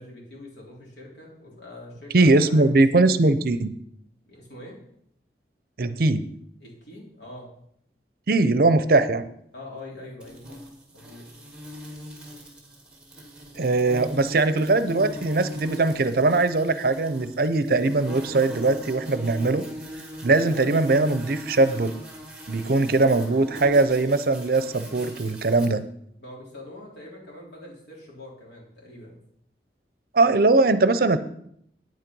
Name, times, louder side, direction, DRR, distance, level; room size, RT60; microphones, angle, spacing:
voice 1, 0.0-2.6 4.3-4.8 6.6-7.5 9.5-10.6 10.9-11.2 26.2-29.2, left 1 dB, 80° left, -3 dB, 3.8 m, -43 dB
voice 2, 2.1-3.7 5.8-6.2 8.3-9.3 13.6-19.6 20.2-21.9 22.5-25.8 30.1-31.2, right 3 dB, 55° right, 12 dB, 0.6 m, -20 dB
sound 1, 10.2-25.7, equal, 5° right, 1.8 m, -41 dB
9.1 x 8.7 x 5.4 m, 0.70 s
head